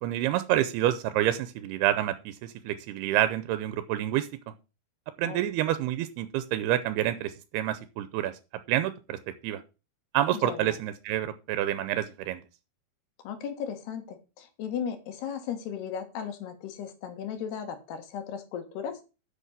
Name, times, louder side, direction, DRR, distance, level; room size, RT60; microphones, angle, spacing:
voice 1, 0.0-4.3 5.2-8.4 8.7-9.6 10.1-12.4, right 13 dB, 85° right, 12 dB, 2.7 m, -28 dB
voice 2, 10.3-10.8 13.3-19.0, left 8 dB, 85° left, 7 dB, 3.7 m, -36 dB
8.3 x 6.4 x 7.4 m, 0.31 s
omnidirectional pair, 4.6 m